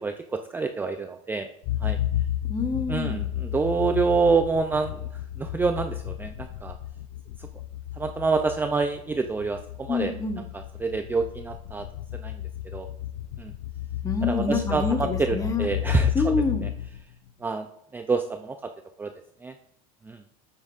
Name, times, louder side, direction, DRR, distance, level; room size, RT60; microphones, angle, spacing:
voice 1, 0.0-1.5 1.8-2.0 2.9-5.1 5.4-6.7 8.0-10.1 10.5-11.9 12.1-12.4 12.7-12.9 13.4-13.5 14.2-16.3 17.4-17.7 17.9-18.7 19.0-19.1 19.4-19.5 20.0-20.2, right 4 dB, 10° right, 6 dB, 0.4 m, -27 dB
sound 1, 1.6-17.3, left 12 dB, 65° left, 0.7 m, -32 dB
voice 2, 2.5-3.2 9.9-10.4 14.0-15.7 16.1-16.7, left 4 dB, 20° left, 6 dB, 1.1 m, -27 dB
11.5 x 8.7 x 2.5 m, 0.78 s
supercardioid pair, 130°, 18 cm